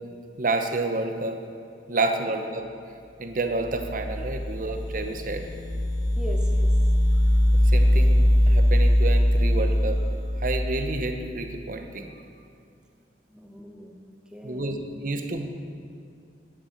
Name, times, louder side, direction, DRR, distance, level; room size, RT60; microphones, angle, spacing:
voice 1, 0.4-1.4 1.9-2.6 3.2-5.5 7.6-10.0 10.4-12.1 14.4-15.5, right 2 dB, 50° right, 5 dB, 0.9 m, -29 dB
sound 1, 3.5-11.1, equal, 80° left, 3.2 m, -21 dB
voice 2, 6.1-6.7 13.3-14.0 14.3-14.9, equal, 5° right, 0 dB, 1.0 m, -40 dB
11.5 x 9.9 x 4.5 m, 2.4 s
head